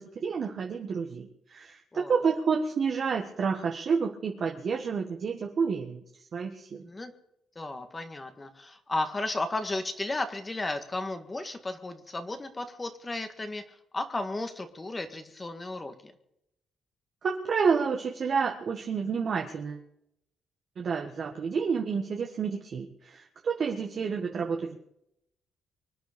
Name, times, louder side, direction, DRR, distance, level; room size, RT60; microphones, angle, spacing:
voice 1, 0.0-6.9 17.2-19.8 20.8-24.8, right 5 dB, 55° right, 2 dB, 1.6 m, -29 dB
voice 2, 7.6-16.1, left 2 dB, 25° left, 7 dB, 1.7 m, -34 dB
24.5 x 9.3 x 5.3 m, 0.78 s
cardioid pair, 90°, 0 cm